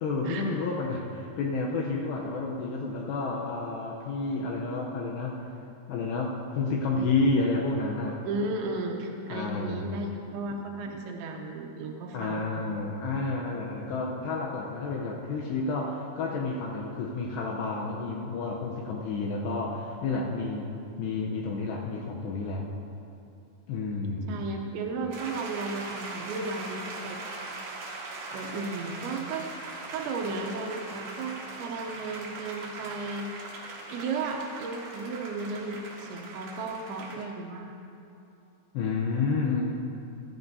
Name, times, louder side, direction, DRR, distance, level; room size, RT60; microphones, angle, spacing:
voice 1, 0.0-5.4 5.9-8.2 9.3-10.0 12.1-22.7 23.7-24.4 38.7-39.7, left 3 dB, 80° left, -1 dB, 2.5 m, -30 dB
voice 2, 8.2-12.5 24.3-27.2 28.3-29.6 29.9-33.6 33.9-37.8, right 3 dB, 80° right, 2 dB, 2.8 m, -34 dB
sound 1, 25.1-37.2, right 3 dB, 65° right, 2.5 m, -40 dB
15.0 x 14.0 x 2.7 m, 2.9 s
omnidirectional pair, 5.7 m